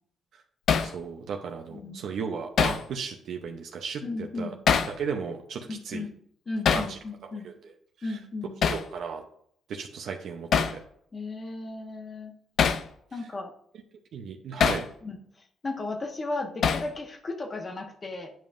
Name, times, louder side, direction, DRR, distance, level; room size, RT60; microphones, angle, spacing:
Hammer, 0.7-0.9 2.6-2.8 4.7-5.0 6.6-6.9 8.6-8.9 10.5-10.8 12.6-12.9 14.6-14.9 16.6-16.9, left 7 dB, 65° left, 0.5 m, -23 dB
voice 1, 0.8-4.0 4.4-4.5 5.0-6.1 6.7-7.0 7.4-7.5 8.1-8.2 8.7-9.2 9.7-10.8 14.1-14.9, right 6 dB, 70° right, 3 dB, 0.7 m, -35 dB
voice 2, 1.7-2.2 4.0-4.6 5.7-6.1 6.5-7.5 8.0-8.6 11.1-12.3 13.1-13.5 15.0-18.3, left 3 dB, 35° left, 4 dB, 1.1 m, -35 dB
9.1 x 5.1 x 2.6 m, 0.65 s
cardioid pair, 90°, 0 cm